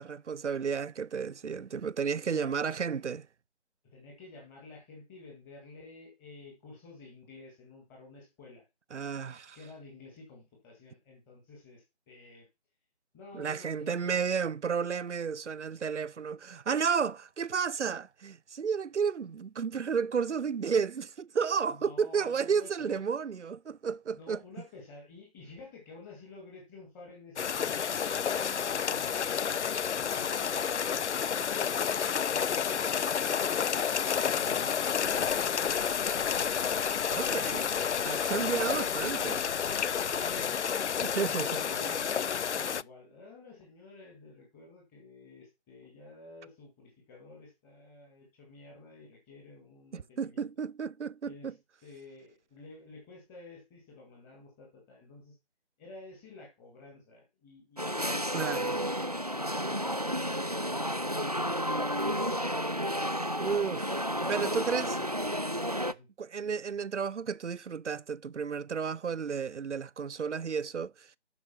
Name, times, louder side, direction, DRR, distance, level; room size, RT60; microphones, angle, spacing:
voice 1, 0.0-3.3 8.9-9.6 13.3-24.4 37.1-37.7 38.0-39.5 41.0-41.5 49.9-51.5 58.3-58.7 61.9-62.1 63.4-65.0 66.2-71.1, right 6 dB, 90° right, 0.5 m, -32 dB
voice 2, 3.9-8.6 9.5-12.5 13.1-14.2 21.7-23.0 24.1-36.7 37.4-38.0 38.3-38.8 40.0-40.6 40.9-50.5 51.2-51.5 51.8-55.3 55.8-63.3 64.6-65.5 65.9-66.1, left 3 dB, 5° left, 1.8 m, -52 dB
sound 1, 27.4-42.8, left 7 dB, 80° left, 0.5 m, -30 dB
sound 2, 34.9-40.5, left 2 dB, 55° left, 1.9 m, -50 dB
sound 3, 57.8-65.9, equal, 35° right, 0.4 m, -31 dB
11.5 x 5.0 x 4.4 m
figure-of-eight pair, 155°, 34 cm